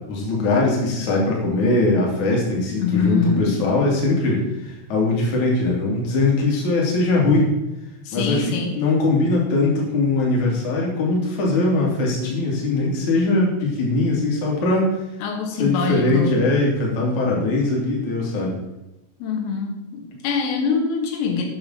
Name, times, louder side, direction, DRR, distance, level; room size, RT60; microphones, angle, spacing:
voice 1, 0.0-7.5 8.1-14.9 15.6-18.6, left 2 dB, 45° left, -2 dB, 3.2 m, -21 dB
voice 2, 2.8-3.6 8.1-8.8 15.2-16.3 19.2-21.5, left 5 dB, 90° left, 3 dB, 4.1 m, -24 dB
8.5 x 6.1 x 7.2 m, 0.96 s
omnidirectional pair, 5.7 m